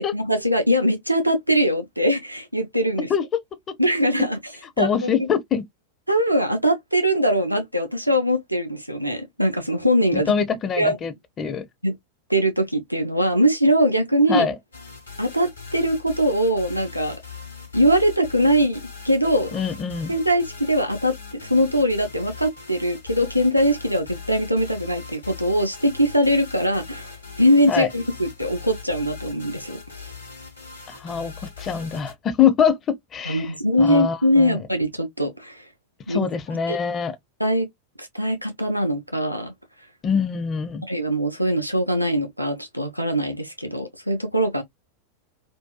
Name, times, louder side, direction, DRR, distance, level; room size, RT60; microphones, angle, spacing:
voice 1, 0.0-3.1 3.8-4.4 4.8-5.3 6.1-10.3 10.8-11.0 11.8-11.9 12.3-14.5 15.2-17.2 17.7-19.5 20.1-30.1 33.3-35.6 36.1-36.2 36.7-36.8 37.4-37.7 38.0-39.5 40.9-44.6, equal, 90° right, 0.4 m, -22 dB
voice 2, 4.8-5.6 10.1-11.7 14.3-14.6 19.5-20.1 27.7-27.9 30.9-33.5 33.8-34.6 36.1-37.2 40.0-40.8, left 7 dB, 25° left, 0.5 m, -24 dB
sound 1, 14.7-32.1, left 5 dB, 80° left, 1.0 m, -40 dB
2.5 x 2.3 x 2.2 m
figure-of-eight pair, 90°, 0 cm